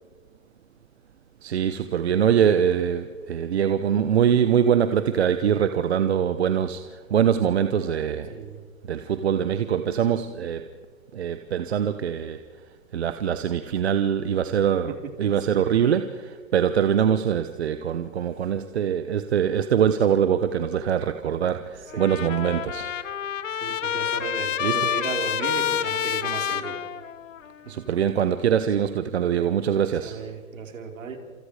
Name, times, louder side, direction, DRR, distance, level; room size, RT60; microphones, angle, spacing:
voice 1, 1.4-6.8 7.1-8.3 8.9-10.7 11.1-12.4 12.9-22.9 24.6-24.9 27.7-30.2, right 8 dB, 50° right, 10 dB, 1.1 m, -23 dB
voice 2, 8.3-8.6 14.9-15.1 15.5-15.6 17.1-17.2 21.9-22.7 23.6-26.8 27.6-27.7 30.0-31.2, right 5 dB, 70° right, 3 dB, 4.7 m, -35 dB
Trumpet, 21.9-27.5, left 9 dB, 65° left, 1.4 m, -28 dB
29.5 x 27.5 x 5.0 m, 1.5 s
hypercardioid pair, 170°, 42 cm